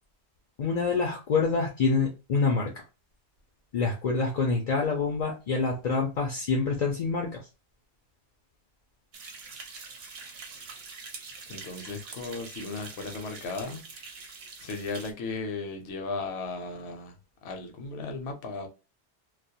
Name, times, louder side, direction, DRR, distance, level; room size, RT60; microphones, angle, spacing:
voice 1, 0.6-2.7 3.7-7.5, left 4 dB, 55° left, 0.4 m, -26 dB
sound 1, 9.1-15.1, right 4 dB, 65° right, 0.8 m, -44 dB
voice 2, 11.5-13.8 14.6-17.1 17.4-18.7, left 3 dB, 70° left, 0.8 m, -36 dB
2.3 x 2.0 x 2.6 m
omnidirectional pair, 1.2 m